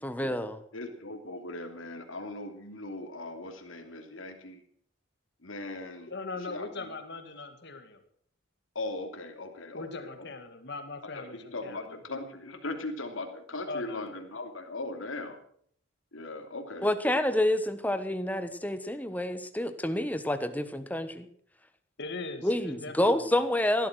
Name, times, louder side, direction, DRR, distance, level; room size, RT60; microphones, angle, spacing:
voice 1, 0.0-0.6 16.8-21.3 22.4-23.9, left 1 dB, 10° left, 10 dB, 1.2 m, -28 dB
voice 2, 0.7-4.6 5.4-6.1 6.4-6.9 8.7-10.3 11.1-15.4 16.1-16.9, left 2 dB, 80° left, 4 dB, 2.9 m, -39 dB
voice 3, 6.1-8.0 9.7-11.9 13.7-14.1 22.0-23.4, left 3 dB, 55° left, 7 dB, 2.3 m, -40 dB
17.0 x 12.0 x 6.3 m, 0.62 s
head